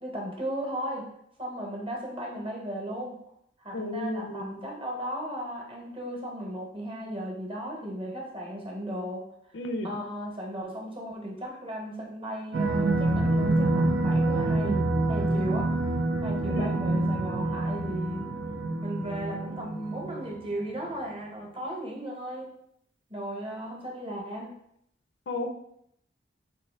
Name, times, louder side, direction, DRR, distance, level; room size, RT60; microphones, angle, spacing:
voice 1, 0.0-1.0 1.4-3.1 3.6-9.2 9.8-14.8 15.1-15.8 16.1-18.2 18.8-22.5 23.1-24.5, equal, 30° right, -1 dB, 0.8 m, -36 dB
voice 2, 3.7-4.6 9.5-10.0 16.5-16.7 25.3-25.5, left 1 dB, 85° left, 5 dB, 0.5 m, -33 dB
sound 1, 12.5-20.6, right 2 dB, 70° right, 0.5 m, -27 dB
3.7 x 2.6 x 3.2 m, 0.72 s
head